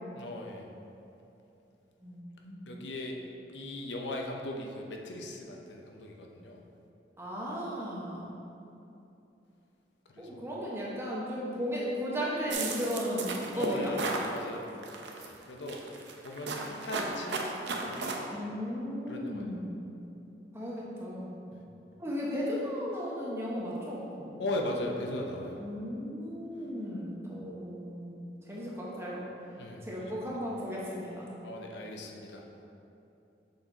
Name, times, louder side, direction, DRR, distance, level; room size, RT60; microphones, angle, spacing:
voice 1, 0.1-0.7 2.7-3.2 3.5-6.6 10.1-10.5 13.5-14.7 15.1-15.8 16.2-18.1 19.1-19.5 21.5-21.6 24.4-25.6 29.6-30.2 31.4-32.4, left 1 dB, 80° left, 1 dB, 0.7 m, -38 dB
voice 2, 2.0-2.7 7.2-8.3 10.2-13.9 18.3-19.8 20.5-21.3 22.0-24.3 25.6-28.2 28.5-29.3 29.8-31.3, equal, 15° right, -6 dB, 1.0 m, -35 dB
sound 1, 12.5-14.3 14.8-15.3 15.7-18.2, right 3 dB, 80° right, 0.6 m, -35 dB
6.5 x 4.3 x 3.9 m, 2.8 s
head